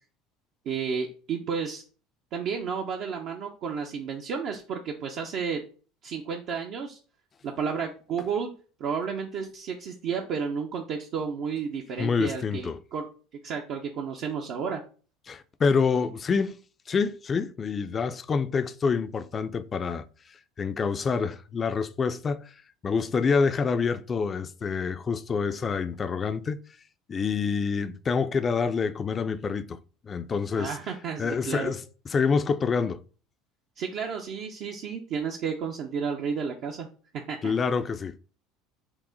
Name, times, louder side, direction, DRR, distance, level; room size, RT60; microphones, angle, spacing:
voice 1, 0.7-1.8 2.3-5.6 6.0-7.0 7.4-8.5 8.8-13.1 13.4-14.8 30.6-31.7 33.8-36.9 37.3-37.5, right 6 dB, 60° right, 0.6 m, -32 dB
voice 2, 12.0-12.8 15.3-16.6 16.9-20.0 20.6-22.5 22.8-26.6 27.1-29.8 30.0-30.8 31.2-31.8 32.1-33.0 37.4-38.2, left 5 dB, 30° left, 0.4 m, -27 dB
5.9 x 2.1 x 3.8 m
supercardioid pair, 100°, 0 cm